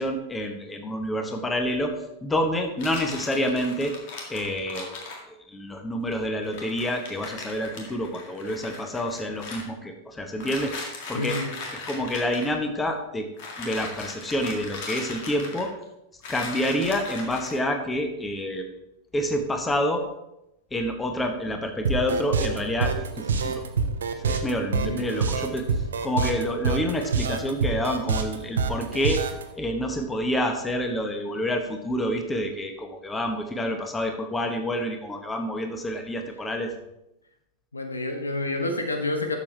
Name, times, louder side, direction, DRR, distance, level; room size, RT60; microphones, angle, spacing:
voice 1, 0.0-1.9 2.2-3.9 4.3-5.0 5.5-10.7 11.1-11.4 11.7-13.3 13.6-15.7 16.3-18.7 19.1-20.0 20.7-23.6 24.2-25.7 26.0-29.2 29.6-36.7, equal, 10° left, 5 dB, 1.2 m, -28 dB
sound 1, 2.8-5.2 6.1-6.2 6.4-9.6 10.4-12.6 13.4-15.8 16.2-17.6, left 3 dB, 50° left, 2.0 m, -38 dB
voice 2, 11.1-11.5 24.7-25.1 37.7-39.4, left 2 dB, 75° left, 5 dB, 1.1 m, -29 dB
sound 2, 21.8-29.4, right 5 dB, 65° right, 0.9 m, -26 dB
12.0 x 7.2 x 3.3 m, 0.88 s
figure-of-eight pair, 90°, 0 cm